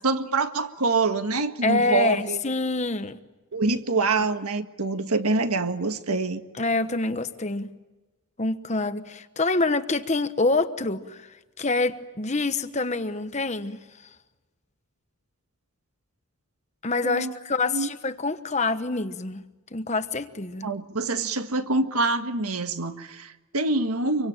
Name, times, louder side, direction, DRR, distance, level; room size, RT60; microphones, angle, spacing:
voice 1, 0.0-2.4 3.5-6.4 17.0-17.3 17.7-17.9 20.6-24.3, right 3 dB, 85° right, 8 dB, 1.7 m, -25 dB
voice 2, 1.6-3.2 6.6-7.7 8.4-11.3 11.6-13.8 16.8-19.4 19.7-20.7, left 3 dB, 30° left, 10 dB, 1.1 m, -26 dB
26.5 x 24.0 x 9.0 m, 1.1 s
head